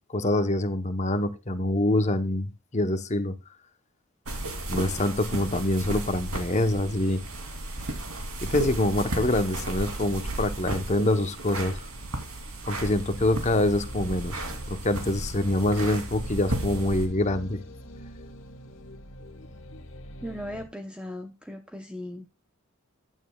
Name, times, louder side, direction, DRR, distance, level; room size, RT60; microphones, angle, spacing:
voice 1, 0.1-3.3 4.7-7.2 8.4-11.8 12.7-17.6, left 1 dB, 30° left, 0.9 m, -25 dB
sound 1, 4.3-17.1, right 1 dB, 80° right, 2.9 m, -34 dB
sound 2, 12.8-20.7, equal, 60° left, 1.5 m, -43 dB
voice 2, 20.2-22.3, left 1 dB, 5° right, 0.8 m, -38 dB
15.0 x 9.2 x 2.3 m
head